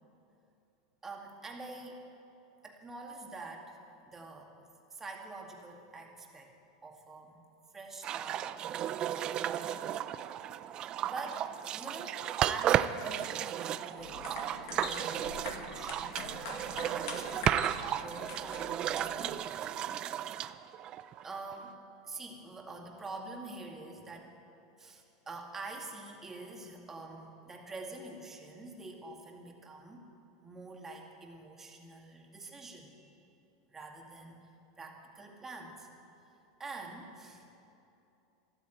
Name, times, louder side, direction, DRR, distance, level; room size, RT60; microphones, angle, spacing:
voice 1, 1.0-2.0 2.6-3.8 4.1-4.5 4.9-6.5 6.8-7.4 7.7-8.5 9.1-9.9 11.0-11.5 11.7-17.7 17.9-19.5 21.2-21.8 22.0-24.3 24.8-30.0 30.4-33.1 33.7-34.4 34.8-35.9 36.6-37.4, right 3 dB, 15° right, 1 dB, 2.2 m, -46 dB
sound 1, 8.0-21.6, right 11 dB, 35° right, 0.5 m, -34 dB
sound 2, 14.0-19.3, left 5 dB, 75° left, 2.0 m, -44 dB
13.5 x 12.5 x 8.0 m, 2.8 s
supercardioid pair, 125°, 2 cm